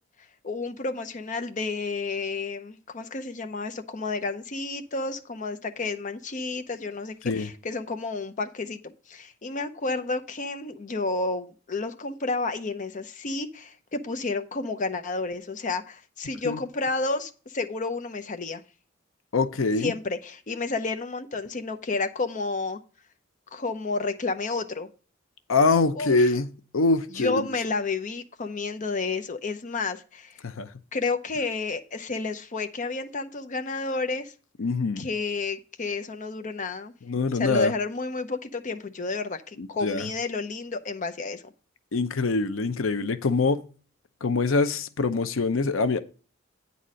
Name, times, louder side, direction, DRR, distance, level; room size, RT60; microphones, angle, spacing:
voice 1, 0.4-18.6 19.8-22.8 23.5-24.9 26.0-26.3 27.1-30.4 30.9-34.3 35.0-36.9 37.4-41.5, left 3 dB, 40° left, 0.7 m, -31 dB
voice 2, 19.3-19.9 25.5-27.5 30.4-30.7 34.6-35.1 37.0-37.7 39.6-40.1 41.9-43.7 44.2-46.0, left 3 dB, 80° left, 0.6 m, -24 dB
9.2 x 4.2 x 6.2 m
head